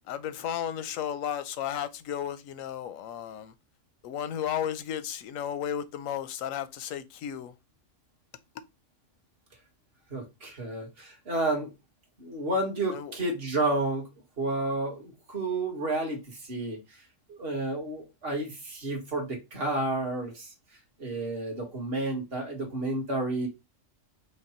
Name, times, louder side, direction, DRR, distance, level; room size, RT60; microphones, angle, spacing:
voice 1, 0.1-3.5 4.0-7.5 12.9-13.1, left 9 dB, 90° left, 1.0 m, -34 dB
voice 2, 10.1-11.7 12.2-14.1 14.4-16.8 17.3-20.5 21.0-23.5, right 2 dB, 50° right, 1.9 m, -31 dB
5.2 x 2.3 x 4.3 m
omnidirectional pair, 1.3 m